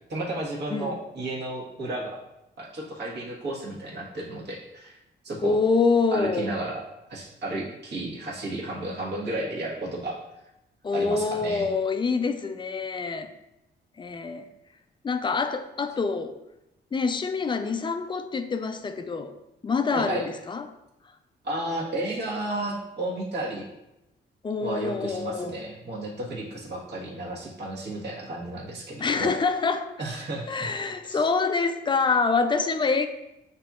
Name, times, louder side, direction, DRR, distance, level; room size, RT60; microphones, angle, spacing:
voice 1, 0.1-2.2 2.6-5.0 5.2-5.6 6.1-10.2 10.9-11.7 19.9-20.2 21.4-23.7 24.6-29.3 30.0-30.7 31.1-31.2, right 1 dB, 65° right, -4 dB, 1.4 m, -33 dB
voice 2, 5.4-6.5 10.8-13.3 14.0-14.5 15.0-16.4 16.9-19.3 19.6-20.6 24.4-25.6 29.0-29.9 30.5-33.1, left 4 dB, 25° left, 8 dB, 0.4 m, -26 dB
8.0 x 2.8 x 2.4 m, 0.90 s
cardioid pair, 110°, 19 cm